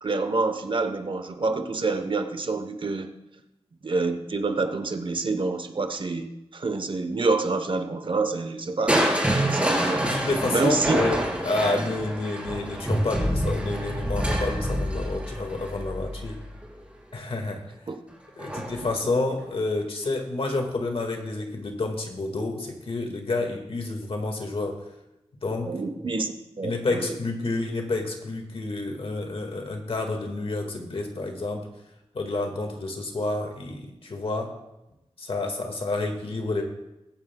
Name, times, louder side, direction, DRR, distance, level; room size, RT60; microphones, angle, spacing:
voice 1, 0.0-3.1 3.8-10.1 10.5-11.0 17.9-18.0 18.5-18.6 25.7-27.2, right 3 dB, 55° right, 8 dB, 1.0 m, -27 dB
Crushing, 8.9-16.8 18.4-18.9 19.4-19.5, right 1 dB, 10° right, 2.9 m, -27 dB
voice 2, 10.0-16.4 17.1-17.6 18.4-24.8 25.4-25.8 26.6-31.7 32.1-34.5 35.2-36.6, left 2 dB, 65° left, 3 dB, 1.8 m, -29 dB
21.5 x 9.4 x 2.3 m, 0.93 s
wide cardioid pair, 100°, 10 cm